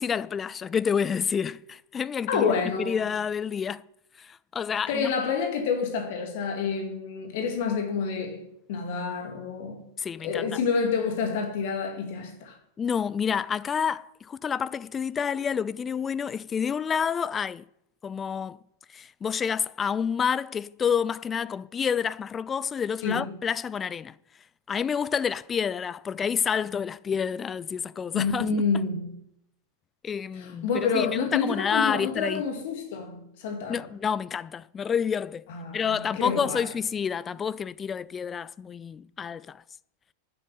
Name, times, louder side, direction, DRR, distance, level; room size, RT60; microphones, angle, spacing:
voice 1, 0.0-3.8 4.2-5.1 10.0-10.6 12.8-17.6 18.0-18.6 18.9-24.1 24.7-28.6 30.0-32.4 33.7-35.4 35.7-39.6, left 7 dB, 20° left, 0.4 m, -29 dB
voice 2, 2.3-3.0 4.9-9.8 10.2-12.6 23.0-23.3 28.1-29.1 30.3-33.9 35.5-36.7, left 5 dB, 50° left, 2.2 m, -28 dB
10.0 x 7.6 x 9.5 m
figure-of-eight pair, 90°, 0 cm